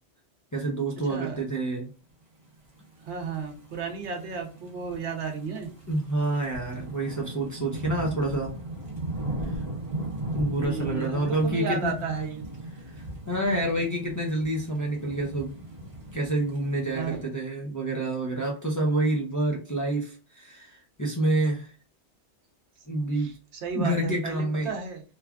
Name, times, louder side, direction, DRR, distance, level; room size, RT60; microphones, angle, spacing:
voice 1, 0.5-1.9 5.9-8.5 9.4-9.6 10.3-11.9 12.8-15.5 16.1-21.7 22.9-23.3 23.7-24.7, right 1 dB, 25° left, -2 dB, 0.5 m, -28 dB
voice 2, 1.1-1.4 3.0-5.7 10.6-12.4 16.9-17.3 23.2-25.0, right 5 dB, 75° right, 4 dB, 1.0 m, -33 dB
sound 1, 2.9-17.2, right 1 dB, 35° right, 0.8 m, -38 dB
3.2 x 2.3 x 2.3 m, 0.35 s
omnidirectional pair, 1.2 m